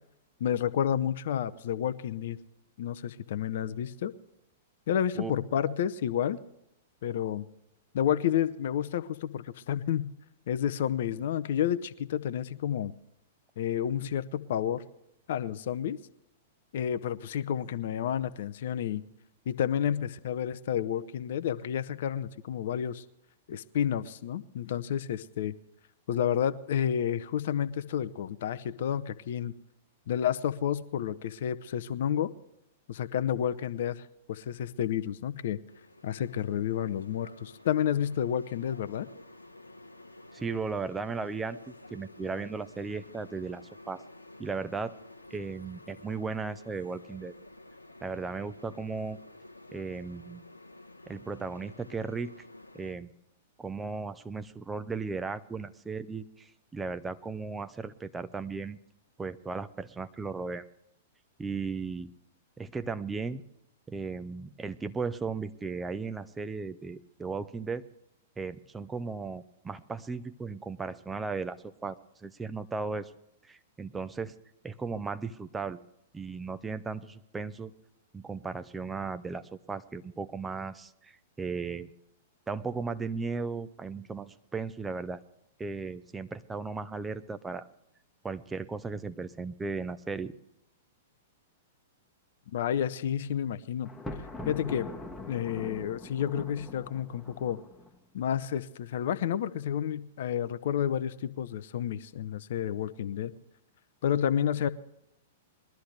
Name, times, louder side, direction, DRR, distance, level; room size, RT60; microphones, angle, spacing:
voice 1, 0.4-2.4 2.8-4.1 4.9-6.4 7.0-7.5 7.9-10.1 10.5-12.9 13.6-14.8 15.3-16.0 16.7-19.0 19.5-23.0 23.5-25.5 26.1-29.5 30.1-32.3 32.9-34.0 34.3-35.6 36.0-39.1 92.5-93.9 94.5-94.9 95.3-97.6 98.1-103.3 104.0-104.7, left 9 dB, 55° left, 13 dB, 0.7 m, -30 dB
sound 1, 35.7-52.9, left 2 dB, 85° left, 1.1 m, -51 dB
voice 2, 40.3-44.0 44.4-44.9 45.3-47.3 48.0-49.2 49.7-50.4 51.1-52.3 52.7-53.1 53.6-58.8 59.2-60.7 61.4-62.1 62.6-63.4 63.9-67.8 68.4-73.1 73.4-74.3 74.6-75.8 76.1-77.7 78.1-81.9 82.5-85.2 85.6-87.7 88.2-90.3, right 4 dB, 10° right, 11 dB, 0.7 m, -36 dB
Thunder, 93.8-98.0, left 2 dB, 10° left, 1.2 m, -42 dB
21.5 x 13.0 x 3.4 m, 0.81 s
figure-of-eight pair, 105°, 0 cm